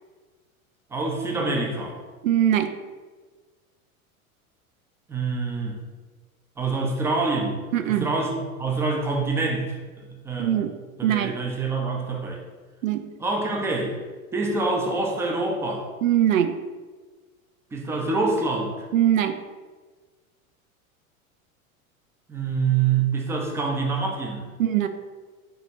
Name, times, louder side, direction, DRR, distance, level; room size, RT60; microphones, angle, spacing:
voice 1, 0.9-2.0 5.1-5.8 6.6-10.5 11.0-12.4 13.2-14.0 14.3-15.9 17.7-18.9 22.3-24.5, right 3 dB, 5° right, 0 dB, 0.4 m, -26 dB
voice 2, 2.2-2.7 7.7-8.1 10.4-10.7 11.0-11.3 12.8-13.0 16.0-16.6 18.9-19.4 24.6-24.9, right 11 dB, 65° right, 8 dB, 0.5 m, -21 dB
6.5 x 2.9 x 2.7 m, 1.3 s
figure-of-eight pair, 85°, 43 cm